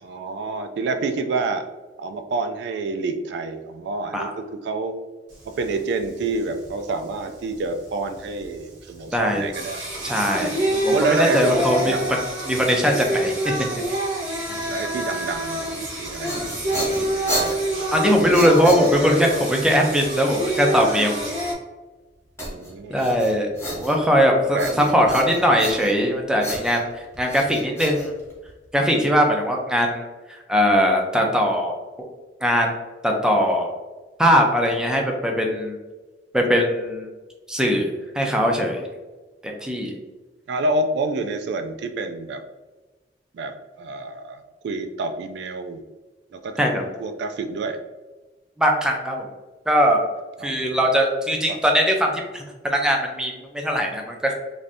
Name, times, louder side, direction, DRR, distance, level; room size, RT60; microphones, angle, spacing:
voice 1, 0.0-1.7 2.0-5.0 5.6-9.9 10.9-12.1 14.7-15.6 16.0-16.6 17.0-17.1 17.4-17.6 18.0-18.7 22.5-23.1 23.6-23.9 24.3-24.9 40.5-42.4 43.3-45.8 46.3-47.8 50.4-50.7 51.5-51.6, right 3 dB, 65° right, 8 dB, 0.3 m, -28 dB
Singing, 5.3-21.5, right 1 dB, 90° right, 1.0 m, -28 dB
voice 2, 9.1-9.4 10.0-12.0 12.5-13.5 17.9-21.2 22.9-23.5 23.8-26.9 27.2-28.1 28.7-30.1 30.5-31.8 32.4-32.8 33.0-33.8 34.2-35.7 36.3-37.1 37.5-37.9 38.1-38.8 39.4-39.9 46.6-46.8 48.6-49.2 49.7-50.0 50.4-54.3, equal, 5° right, 1 dB, 0.4 m, -20 dB
sound 1, 16.0-19.3 22.4-24.2 24.6-26.1 26.4-28.7, equal, 15° left, 0.9 m, -32 dB
3.3 x 2.6 x 2.5 m, 1.2 s
head